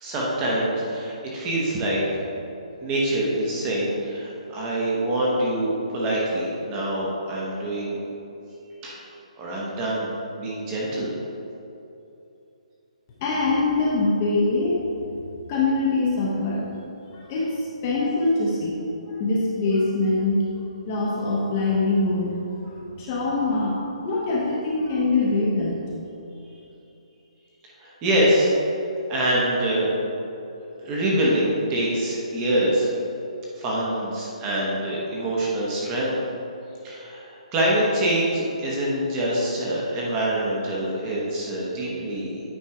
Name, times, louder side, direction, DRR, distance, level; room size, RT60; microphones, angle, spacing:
voice 1, 0.0-2.0 2.8-8.0 8.8-9.0 9.4-10.1 10.4-11.1 27.8-28.5 29.1-29.9 30.8-32.9 33.6-36.1 36.8-42.4, right 1 dB, 10° right, -5 dB, 0.8 m, -25 dB
voice 2, 13.2-14.8 15.5-16.6 17.1-20.4 20.9-25.8, left 3 dB, 15° left, -4 dB, 0.7 m, -24 dB
8.7 x 3.9 x 4.7 m, 2.9 s
hypercardioid pair, 180°, 4 cm